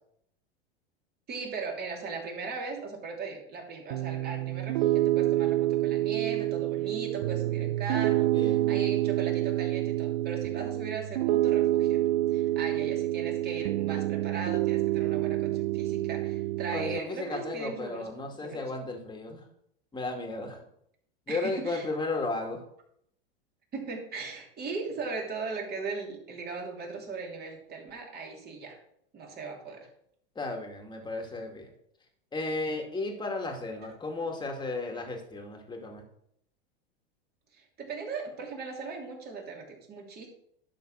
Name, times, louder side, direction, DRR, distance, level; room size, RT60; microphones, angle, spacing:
voice 1, 1.3-12.0 12.3-18.1 18.4-18.6 21.3-21.9 23.7-28.8 29.1-29.9 37.5-40.3, right 4 dB, 30° right, 0 dB, 2.9 m, -38 dB
Piano, 3.9-17.0, right 15 dB, 70° right, 0.5 m, -27 dB
voice 2, 8.3-9.0 16.7-19.4 19.9-20.6 21.3-22.6 30.4-31.7 32.3-36.0, left 3 dB, 15° left, 2 dB, 2.2 m, -34 dB
11.5 x 4.0 x 6.3 m, 0.71 s
hypercardioid pair, 105°, 30 cm